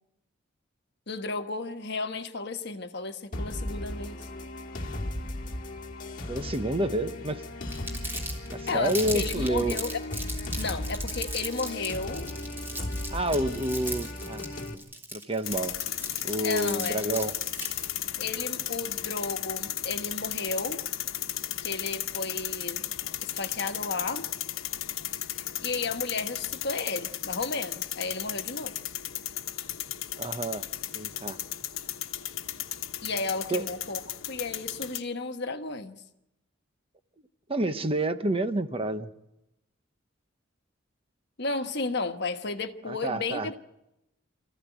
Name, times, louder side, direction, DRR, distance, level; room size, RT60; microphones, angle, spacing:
voice 1, 1.1-4.3 8.7-10.0 10.6-12.3 16.4-17.0 18.2-20.8 21.6-22.8 23.2-24.3 25.6-28.7 33.0-34.0 34.3-36.0 41.4-43.6, left 3 dB, 55° left, 1.4 m, -33 dB
sound 1, 3.3-14.7, left 1 dB, 40° left, 2.0 m, -36 dB
voice 2, 6.3-7.4 8.5-9.8 13.1-14.4 15.1-15.8 16.2-17.3 30.2-30.7 30.9-31.4 33.5-33.6 37.5-39.1 42.9-43.6, right 1 dB, 30° right, 0.9 m, -29 dB
Crumpling crinkling, 7.7-17.9, right 1 dB, 10° right, 3.5 m, -37 dB
sound 2, 15.4-35.0, left 12 dB, 90° left, 1.0 m, -35 dB
26.0 x 15.0 x 9.3 m
head